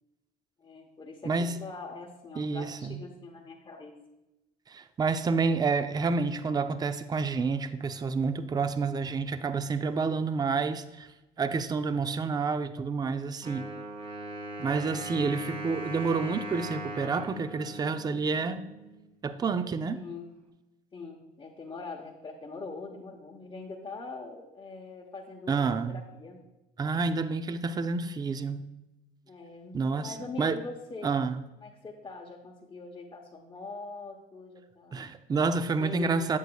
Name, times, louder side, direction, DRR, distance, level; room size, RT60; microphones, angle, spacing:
voice 1, 0.6-3.9 19.9-20.3 20.9-26.4 29.3-31.1 31.6-35.1 35.5-36.2, left 3 dB, 25° left, -2 dB, 0.9 m, -43 dB
voice 2, 1.2-1.6 2.4-3.0 4.7-11.1 11.4-13.7 14.6-18.6 19.2-20.0 25.5-26.0 26.8-28.6 29.7-30.6 31.0-31.4 34.9-36.4, right 4 dB, 25° right, 11 dB, 0.4 m, -29 dB
Wind instrument woodwind instrument, 13.4-19.1, right 1 dB, 40° right, 1.5 m, -39 dB
9.4 x 7.9 x 2.3 m, 0.99 s
cardioid pair, 110°, 17 cm